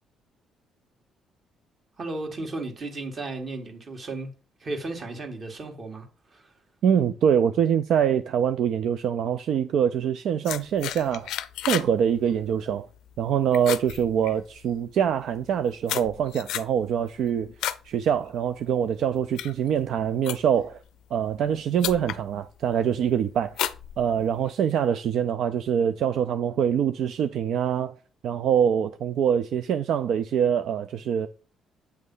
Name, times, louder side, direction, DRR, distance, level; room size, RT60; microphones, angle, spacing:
voice 1, 2.0-4.3 4.6-6.5, right 2 dB, 40° right, 1.9 m, -35 dB
voice 2, 6.8-11.3 11.7-12.9 13.2-17.5 17.8-20.8 21.1-23.7 24.0-27.9 28.2-31.3, right 8 dB, 70° right, 0.4 m, -24 dB
sound 1, 10.4-11.9 12.2-12.6 13.0-13.3 13.5-14.7 15.3-17.9 18.3-18.6 19.1-20.7 21.4-21.5 21.8-22.2 22.7-23.1 23.5-24.5, left 12 dB, 85° left, 0.5 m, -32 dB
8.3 x 3.2 x 5.5 m
cardioid pair, 90°, 0 cm